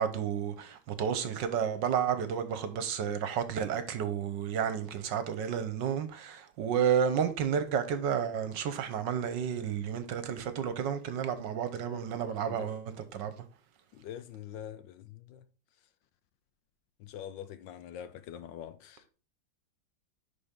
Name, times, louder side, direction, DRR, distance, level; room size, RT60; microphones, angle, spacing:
voice 1, 0.0-13.3, right 8 dB, 65° right, 1.4 m, -31 dB
voice 2, 13.9-15.4 17.0-19.0, left 10 dB, 75° left, 1.2 m, -44 dB
11.0 x 4.3 x 3.6 m
omnidirectional pair, 2.2 m